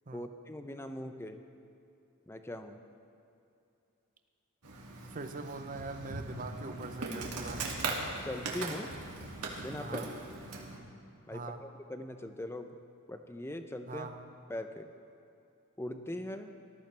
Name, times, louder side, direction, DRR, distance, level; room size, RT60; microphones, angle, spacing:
voice 1, 0.1-1.4 2.3-2.8 8.2-9.0 9.6-10.1 11.3-12.7 13.1-14.1 14.5-14.9 15.8-16.5, left 1 dB, 10° left, 7 dB, 0.6 m, -41 dB
Insect, 4.6-10.8, right 3 dB, 90° right, 1.9 m, -39 dB
voice 2, 5.1-7.7 9.8-10.1 11.3-11.6 13.9-14.3, right 3 dB, 35° right, 8 dB, 0.7 m, -42 dB
19.0 x 13.5 x 3.4 m, 2.7 s
head